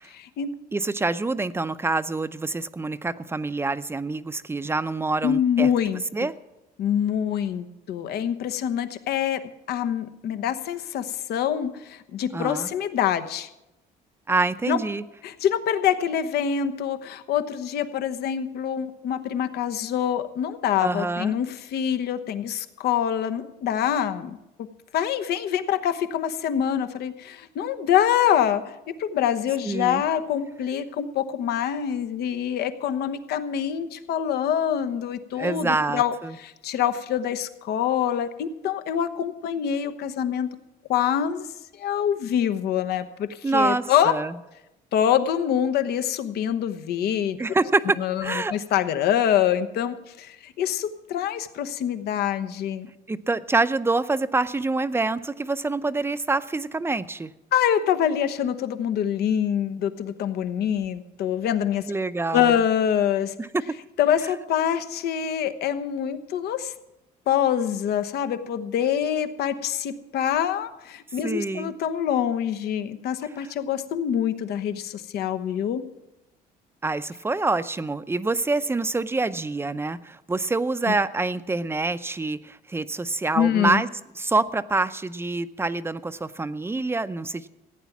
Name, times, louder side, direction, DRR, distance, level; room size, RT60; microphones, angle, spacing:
voice 1, 0.1-0.5 5.2-6.3 6.8-9.4 9.7-13.5 14.7-14.8 15.2-24.4 24.9-40.5 40.9-41.5 41.8-44.1 44.9-47.4 48.0-52.9 57.5-61.9 62.3-63.3 64.0-66.7 67.3-75.8 80.9-81.0 83.3-83.8, left 9 dB, 70° left, 10 dB, 1.0 m, -25 dB
voice 2, 0.7-5.7 6.1-6.3 12.3-12.7 14.3-15.0 20.8-21.3 29.6-30.0 35.4-36.3 43.4-44.3 47.4-48.5 53.1-57.3 61.9-62.6 71.2-71.7 76.8-83.9 84.2-87.5, right 3 dB, 15° right, 13 dB, 0.6 m, -26 dB
15.5 x 9.2 x 7.2 m, 0.93 s
cardioid pair, 110°, 17 cm